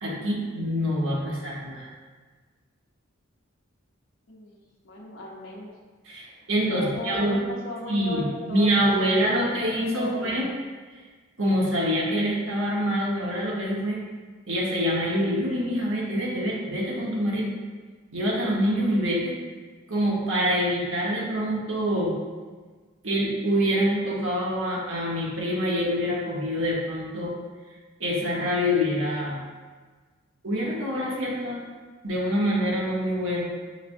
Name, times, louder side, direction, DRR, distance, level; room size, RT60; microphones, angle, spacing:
voice 1, 0.0-1.9 6.0-7.4 7.9-10.5 11.4-14.0 14.5-17.5 18.1-19.3 19.9-22.2 23.0-27.4 28.0-29.4 30.4-31.6 32.0-33.4, equal, 75° right, -4 dB, 1.0 m, -25 dB
voice 2, 4.3-5.7 6.1-10.4, left 1 dB, 75° left, -4 dB, 0.8 m, -38 dB
5.8 x 3.1 x 2.6 m, 1.4 s
head